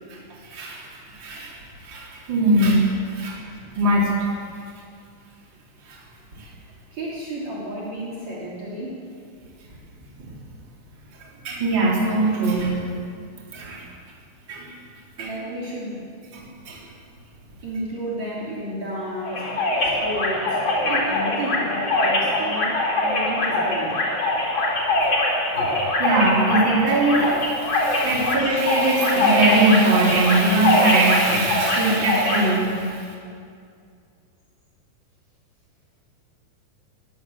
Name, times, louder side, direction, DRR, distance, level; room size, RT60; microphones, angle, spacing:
voice 1, 0.4-1.5 1.8-2.8 3.1-3.4 3.7-4.3 5.9-6.0 6.4-6.5 10.2-10.3 11.2-12.8 13.5-13.8 14.5-14.7 15.2-15.3 16.3-16.9 25.5-33.1, right 2 dB, 30° right, -4 dB, 4.3 m, -21 dB
voice 2, 6.9-8.9 15.2-16.1 17.6-19.4 19.8-22.8 23.0-24.0, right 1 dB, 45° right, -5 dB, 4.4 m, -32 dB
sound 1, 19.2-32.4, left 2 dB, 30° left, 4.2 m, -23 dB
22.5 x 17.0 x 7.4 m, 2.3 s
omnidirectional pair, 4.8 m